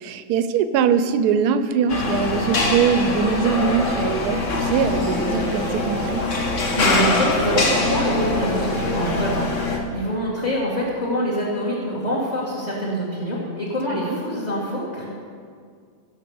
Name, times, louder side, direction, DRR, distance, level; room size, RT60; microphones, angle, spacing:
voice 1, 0.0-6.2 13.9-14.2, right 7 dB, 75° right, 11 dB, 1.2 m, -22 dB
sound 1, 1.9-9.8, left 2 dB, 50° left, 1.5 m, -23 dB
voice 2, 6.7-15.1, equal, 25° left, -6 dB, 1.9 m, -25 dB
16.5 x 5.8 x 7.0 m, 2.1 s
omnidirectional pair, 1.8 m